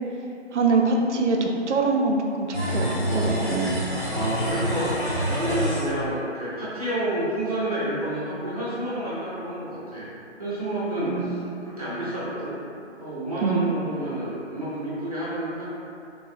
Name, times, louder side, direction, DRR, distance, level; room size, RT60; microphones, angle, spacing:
voice 1, 0.5-3.8 11.1-11.5 13.4-13.7, right 3 dB, 80° right, 2 dB, 0.5 m, -24 dB
sound 1, 2.5-5.9, equal, 45° left, 1.4 m, -27 dB
voice 2, 3.0-3.8 4.1-10.1 10.4-12.6 12.9-15.7, right 1 dB, 35° right, -11 dB, 0.6 m, -29 dB
3.4 x 2.0 x 2.4 m, 2.6 s
figure-of-eight pair, 160°, 35 cm